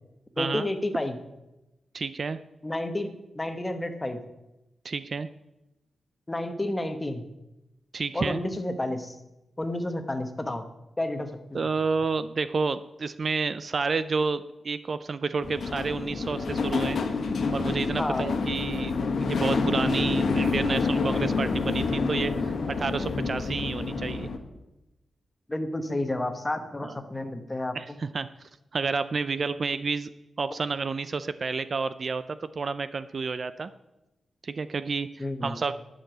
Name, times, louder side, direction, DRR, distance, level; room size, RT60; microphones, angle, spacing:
voice 1, 0.4-1.2 2.6-4.2 6.3-7.2 8.1-9.2 9.6-10.6 11.0-11.6 18.0-18.3 25.5-28.0 35.2-35.6, left 1 dB, 15° left, 7 dB, 1.0 m, -31 dB
voice 2, 1.9-2.4 4.8-5.3 7.9-8.4 11.5-17.0 17.5-19.0 19.2-24.3 26.8-26.9 27.7-28.3 28.7-30.1 30.4-33.7 34.4-35.7, right 4 dB, 40° right, 13 dB, 0.3 m, -30 dB
sound 1, 15.4-24.4, left 4 dB, 55° left, 1.4 m, -28 dB
10.5 x 6.6 x 7.8 m, 0.96 s
wide cardioid pair, 170°, 0 cm